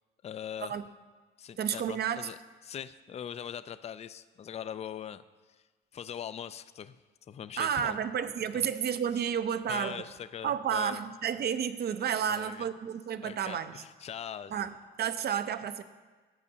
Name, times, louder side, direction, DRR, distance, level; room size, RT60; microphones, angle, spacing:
voice 1, 0.2-0.8 1.4-2.4 2.6-5.2 5.5-5.6 5.9-7.0 7.3-8.0 8.5-8.6 9.7-11.0 12.3-12.7 13.2-14.6, left 9 dB, 35° left, 14 dB, 0.3 m, -41 dB
voice 2, 1.6-2.3 7.6-10.0 10.4-13.7 14.5-15.8, right 8 dB, 55° right, 11 dB, 0.6 m, -31 dB
12.0 x 8.4 x 2.8 m, 1.4 s
cardioid pair, 90°, 20 cm